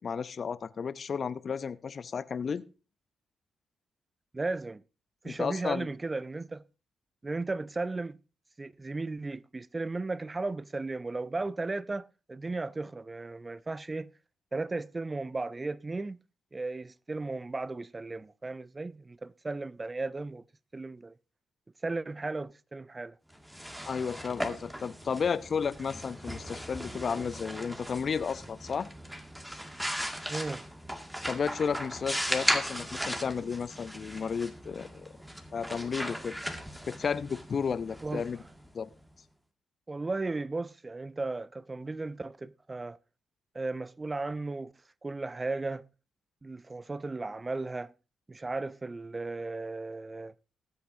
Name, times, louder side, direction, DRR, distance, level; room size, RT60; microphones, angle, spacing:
voice 1, 0.0-2.7 5.2-5.9 23.8-28.9 31.3-35.1 35.5-36.4 36.9-38.4 38.7-38.9, left 6 dB, 50° left, 0.6 m, -33 dB
voice 2, 4.3-4.8 5.2-6.6 7.2-8.2 8.6-14.1 14.5-16.2 16.5-20.4 20.7-21.1 21.8-23.2 30.3-30.6 38.0-38.3 39.9-43.0 43.5-44.7 45.0-45.9 46.4-47.9 48.3-50.3, right 3 dB, 30° right, 0.4 m, -35 dB
sound 1, 23.3-39.0, equal, 5° right, 2.0 m, -37 dB
20.0 x 8.2 x 2.7 m
hypercardioid pair, 40°, 0 cm